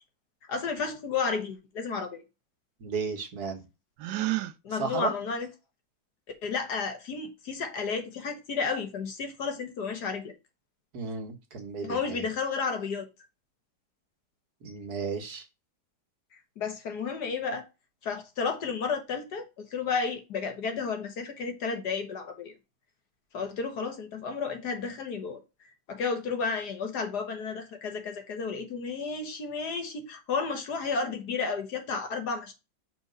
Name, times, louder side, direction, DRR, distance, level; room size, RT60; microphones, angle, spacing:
voice 1, 0.5-2.2 4.6-5.5 6.4-10.3 11.8-13.1 16.6-17.7 18.0-19.5 19.7-22.5 23.3-25.4 25.9-32.5, left 5 dB, 70° left, 2.0 m, -32 dB
voice 2, 2.8-3.6 4.7-5.1 10.9-12.2 14.6-15.5, right 5 dB, 65° right, 1.9 m, -34 dB
Gasp, 4.0-4.6, right 17 dB, 80° right, 1.2 m, -29 dB
5.6 x 4.4 x 5.3 m
omnidirectional pair, 1.8 m